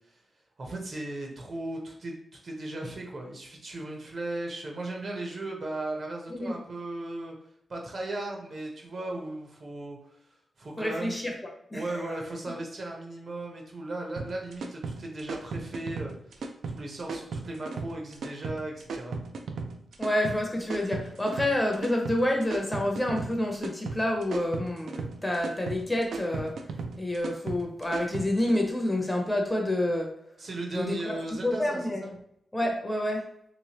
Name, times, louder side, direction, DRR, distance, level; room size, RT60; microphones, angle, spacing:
voice 1, 0.6-2.2 2.4-7.3 7.7-10.0 10.6-11.2 11.7-19.2 30.4-32.1, right 2 dB, 45° right, 0 dB, 0.8 m, -36 dB
voice 2, 10.8-11.3 11.7-12.1 20.0-26.6 27.0-30.1 30.7-31.2 31.4-32.0 32.5-33.2, left 1 dB, 10° left, 1 dB, 0.6 m, -28 dB
sound 1, 14.2-28.6, right 4 dB, 80° right, 0.4 m, -36 dB
3.3 x 3.0 x 2.9 m, 0.74 s
wide cardioid pair, 135°, 0 cm